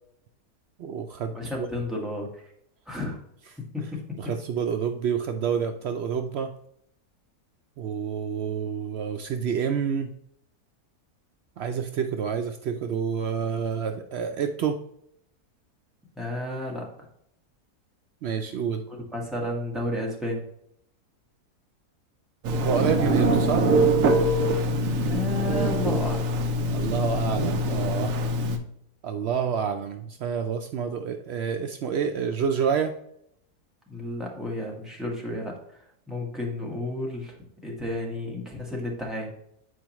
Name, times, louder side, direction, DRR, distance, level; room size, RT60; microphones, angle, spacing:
voice 1, 0.8-1.7 4.2-6.6 7.8-10.2 11.6-14.8 18.2-18.8 22.6-23.7 26.7-28.1 29.0-32.9, right 7 dB, 85° right, 6 dB, 0.5 m, -28 dB
voice 2, 1.3-2.4 2.9-3.2 3.7-4.0 16.2-16.9 18.9-20.4 24.9-26.3 33.9-35.8 36.1-37.4 37.6-39.3, left 1 dB, ahead, -2 dB, 1.3 m, -32 dB
Telephone, 22.4-28.6, right 1 dB, 65° right, 1.0 m, -23 dB
8.2 x 4.6 x 3.0 m, 0.73 s
omnidirectional pair, 1.6 m